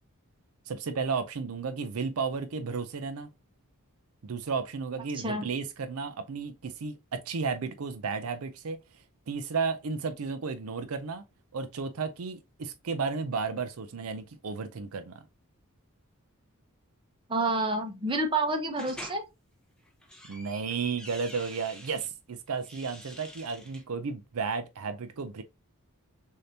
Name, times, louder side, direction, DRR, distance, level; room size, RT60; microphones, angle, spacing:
voice 1, 0.7-3.3 4.2-8.8 9.3-11.2 11.5-15.2 20.3-25.4, right 5 dB, 75° right, 0.5 m, -33 dB
voice 2, 5.1-5.5 17.3-19.2, right 2 dB, 25° right, 1.0 m, -28 dB
sound 1, 18.8-19.2 19.9-22.1 22.5-23.8, equal, 5° left, 1.0 m, -46 dB
6.5 x 2.8 x 2.8 m
head